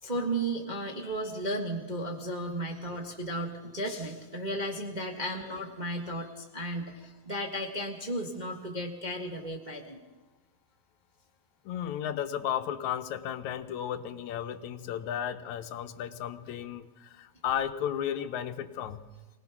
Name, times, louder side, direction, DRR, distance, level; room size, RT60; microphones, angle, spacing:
voice 1, 0.0-10.0, right 1 dB, 25° right, 0 dB, 1.1 m, -34 dB
voice 2, 11.7-19.0, left 9 dB, 75° left, 9 dB, 2.2 m, -34 dB
24.0 x 18.0 x 5.9 m, 1.2 s
omnidirectional pair, 3.4 m